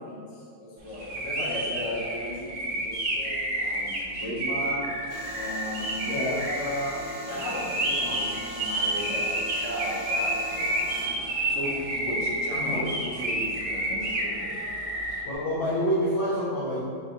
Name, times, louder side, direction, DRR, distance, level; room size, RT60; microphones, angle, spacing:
voice 1, 0.0-4.9 5.3-7.0 7.2-11.2 11.5-14.6, equal, 70° left, -5 dB, 1.6 m, -35 dB
sound 1, 0.9-15.2, right 1 dB, 60° right, 1.1 m, -30 dB
sound 2, 5.1-11.1, right 1 dB, 85° left, 1.3 m, -40 dB
voice 2, 6.0-6.4 12.5-12.8 15.2-16.8, equal, 50° left, -11 dB, 1.0 m, -27 dB
4.9 x 2.5 x 4.3 m, 2.2 s
omnidirectional pair, 1.9 m